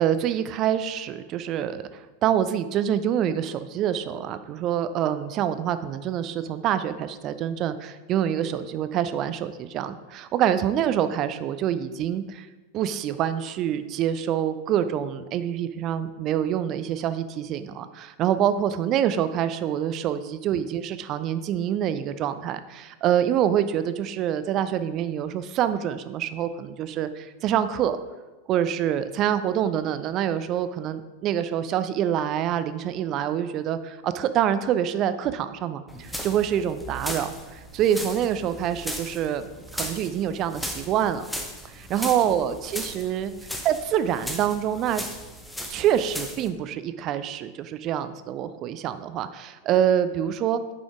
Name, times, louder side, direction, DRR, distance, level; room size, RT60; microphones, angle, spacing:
voice 1, 0.0-12.5 12.7-28.0 28.5-41.3 41.7-43.3 43.6-45.0 45.7-50.6, right 10 dB, 35° right, 12 dB, 0.4 m, -26 dB
sound 1, 35.9-46.5, equal, 5° left, 0.7 m, -37 dB
8.4 x 5.1 x 3.6 m, 1.2 s
figure-of-eight pair, 90°, 0 cm